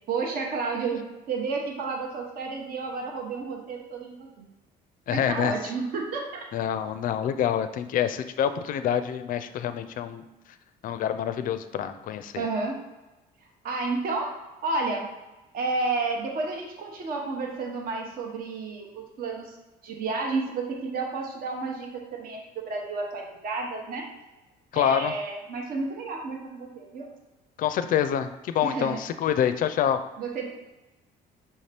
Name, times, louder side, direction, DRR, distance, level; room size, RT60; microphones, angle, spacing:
voice 1, 0.0-4.5 5.1-6.4 12.4-12.8 13.6-14.3 14.6-15.1 15.5-19.5 19.8-24.1 24.7-27.1 28.6-29.0 30.2-30.5, right 3 dB, 60° right, 1 dB, 0.9 m, -31 dB
voice 2, 5.1-5.5 6.5-10.2 10.8-12.5 24.7-25.1 27.6-30.0, left 9 dB, 55° left, 10 dB, 0.4 m, -26 dB
5.6 x 2.8 x 3.3 m, 1.0 s
cardioid pair, 110°, 17 cm